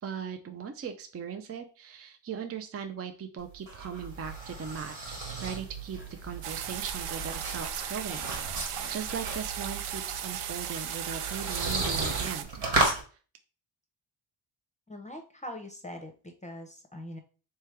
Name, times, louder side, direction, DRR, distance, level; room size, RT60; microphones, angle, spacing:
voice 1, 0.0-4.9 5.4-12.6, right 7 dB, 30° right, 7 dB, 0.5 m, -39 dB
sound 1, 3.4-13.0, right 2 dB, 65° right, 1.6 m, -34 dB
sound 2, 6.4-12.4, right 9 dB, 85° right, 0.6 m, -36 dB
voice 2, 14.9-17.2, left 1 dB, 15° left, 4 dB, 0.7 m, -42 dB
3.3 x 3.2 x 3.3 m, 0.38 s
cardioid pair, 70°, 50 cm